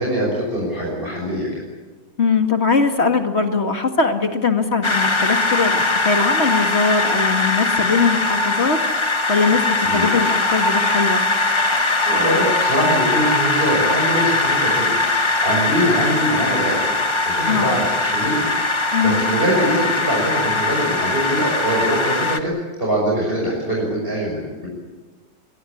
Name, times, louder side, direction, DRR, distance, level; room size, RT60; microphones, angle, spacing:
voice 1, 0.0-1.6 9.8-10.1 12.1-14.9 15.4-16.9 17.2-18.5 18.7-24.7, right 1 dB, 30° right, -3 dB, 6.3 m, -23 dB
voice 2, 2.2-11.3 17.5-17.8 18.9-19.3, left 4 dB, 35° left, 5 dB, 2.1 m, -21 dB
sound 1, 4.8-22.4, left 2 dB, 20° left, 1.1 m, -20 dB
22.0 x 22.0 x 8.6 m, 1.3 s
omnidirectional pair, 2.1 m